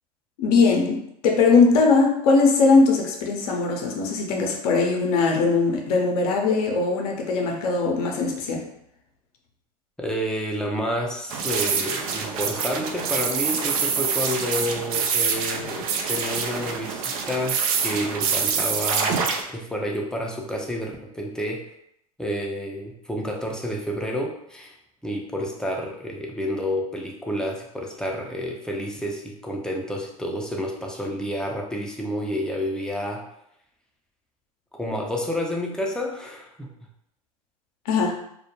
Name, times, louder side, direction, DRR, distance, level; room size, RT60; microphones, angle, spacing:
voice 1, 0.4-8.6 37.9-38.2, left 4 dB, 70° left, 1 dB, 0.6 m, -20 dB
voice 2, 10.0-21.6 22.2-24.7 25.0-33.2 34.8-36.7, equal, 5° left, 0 dB, 0.5 m, -29 dB
sound 1, 11.3-19.4, right 6 dB, 70° right, 0.4 m, -26 dB
2.2 x 2.1 x 2.9 m, 0.75 s
hypercardioid pair, 90°, 20 cm